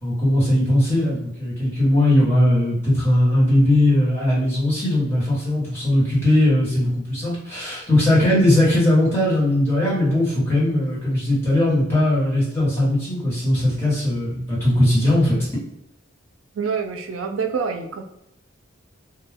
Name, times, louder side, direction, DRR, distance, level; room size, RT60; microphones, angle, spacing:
voice 1, 0.0-15.4, left 1 dB, 10° left, -8 dB, 1.1 m, -19 dB
voice 2, 16.6-18.0, right 5 dB, 85° right, 5 dB, 0.4 m, -26 dB
2.3 x 2.1 x 3.3 m, 0.82 s
head